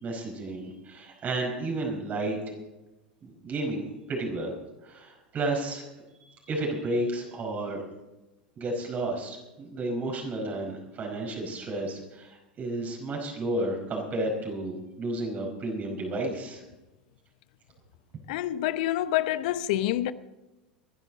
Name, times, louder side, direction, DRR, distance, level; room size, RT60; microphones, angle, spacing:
voice 1, 0.0-2.4 3.2-4.5 4.8-5.9 6.2-7.8 8.6-16.6, right 2 dB, 35° right, 5.2 m, -32 dB
voice 2, 18.3-20.1, left 13 dB, 60° left, 0.8 m, -27 dB
24.5 x 11.0 x 4.2 m
figure-of-eight pair, 85°, 5 cm